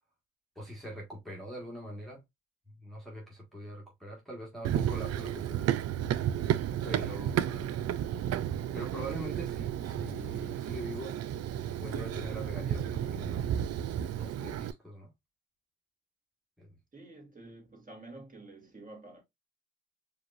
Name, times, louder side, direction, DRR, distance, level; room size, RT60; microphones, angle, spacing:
voice 1, 0.6-2.2 2.8-5.7 6.8-7.7 8.7-11.2 11.8-13.5 14.2-15.1 16.6-16.7, equal, ahead, 1.6 m, -43 dB
Run, 4.6-14.7, right 10 dB, 55° right, 0.5 m, -32 dB
voice 2, 16.9-19.2, right 2 dB, 25° right, 2.3 m, -49 dB
4.9 x 3.0 x 2.5 m
cardioid pair, 90°, 30 cm